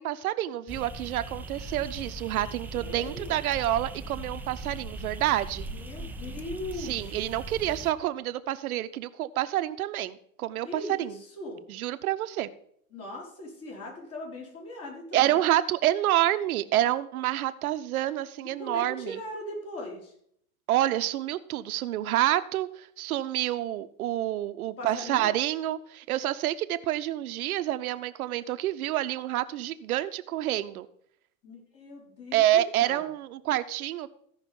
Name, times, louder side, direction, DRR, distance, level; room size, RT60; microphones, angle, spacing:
voice 1, 0.0-5.7 6.8-11.1 11.7-12.5 15.1-19.2 20.7-30.9 32.3-34.1, right 13 dB, 80° right, 12 dB, 0.8 m, -28 dB
sound 1, 0.7-7.9, right 2 dB, 5° right, 0.3 m, -39 dB
voice 2, 2.7-3.4 5.7-7.2 10.6-11.6 12.9-15.4 18.4-20.1 24.8-25.3 31.4-33.1, left 1 dB, 35° left, -1 dB, 4.7 m, -40 dB
15.0 x 5.6 x 5.3 m, 0.68 s
hypercardioid pair, 115°, 43 cm